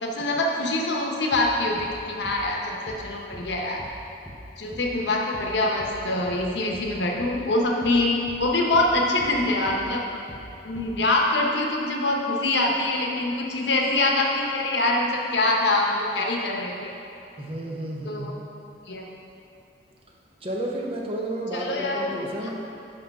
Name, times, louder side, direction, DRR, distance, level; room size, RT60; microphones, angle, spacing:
voice 1, 0.0-3.8 4.6-8.1 8.4-10.0 10.6-16.9 18.0-18.3 18.9-19.0 21.5-22.1, left 2 dB, 75° left, 0 dB, 0.9 m, -24 dB
sound 1, 1.3-1.5 1.8-2.0 2.2-2.4 2.9-3.1 3.3-3.5 3.8-4.0 4.3-4.5 4.7-4.9 5.3-5.5 5.8-6.0 6.3-6.5 6.7-6.9 7.2-7.4 7.8-8.0 8.3-8.5 8.7-8.9 9.2-9.4 9.7-9.9 10.3-10.5 10.8-11.0, equal, 10° left, 0.7 m, -42 dB
voice 2, 17.4-18.3 20.4-22.5, right 1 dB, 35° right, -2 dB, 0.8 m, -31 dB
5.7 x 5.4 x 5.3 m, 2.8 s
head